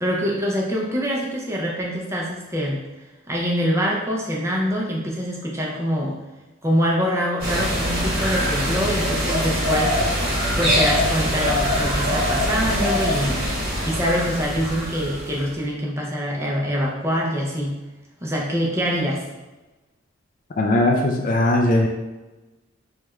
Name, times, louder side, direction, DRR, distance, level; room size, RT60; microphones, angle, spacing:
voice 1, 0.0-2.8 3.3-6.2 6.6-9.9 10.6-13.5 13.8-17.8 18.2-19.2, equal, 15° right, -3 dB, 0.5 m, -24 dB
sound 1, 7.4-15.5, equal, 45° right, 1.3 m, -23 dB
voice 2, 20.6-21.9, left 1 dB, 40° left, 2 dB, 0.3 m, -19 dB
3.3 x 2.3 x 3.0 m, 1.1 s
head